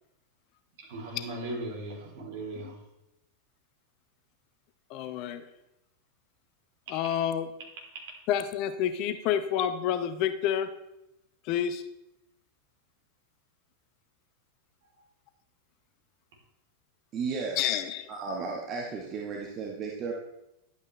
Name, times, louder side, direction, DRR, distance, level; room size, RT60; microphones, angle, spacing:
voice 1, 0.8-2.8 6.9-7.0, right 1 dB, 55° right, -1 dB, 3.0 m, -38 dB
voice 2, 4.9-5.5 6.9-7.5 8.3-10.7 11.4-11.8 17.6-18.1, left 10 dB, 40° left, 10 dB, 0.6 m, -29 dB
voice 3, 17.1-17.8 18.1-20.1, right 4 dB, 30° right, -1 dB, 1.2 m, -34 dB
11.0 x 8.2 x 3.1 m, 0.87 s
figure-of-eight pair, 90°, 0 cm